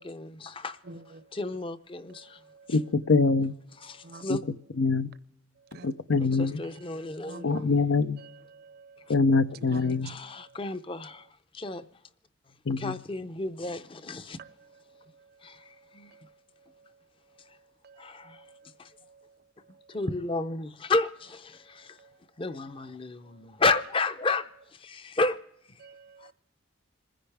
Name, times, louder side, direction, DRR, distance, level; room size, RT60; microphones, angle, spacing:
voice 1, 0.0-2.4 2.7-2.8 3.8-4.4 6.2-7.7 9.1-9.2 10.0-11.8 12.5-14.4 15.4-16.2 17.5-17.6 18.0-18.5 18.8-18.9 19.9-22.0 22.4-25.4 25.7-25.8 26.2-26.3, left 3 dB, 25° left, 0.6 m, -32 dB
voice 2, 2.7-3.5 4.3-4.4 4.8-5.1 5.8-6.6 7.4-8.2 9.1-10.1 12.7-12.9, left 3 dB, 85° left, 0.6 m, -24 dB
voice 3, 7.2-7.7 8.5-9.1 9.7-10.0 17.8-18.0 18.3-18.6 25.8-26.3, right 3 dB, 55° right, 0.6 m, -47 dB
27.0 x 10.0 x 3.4 m
head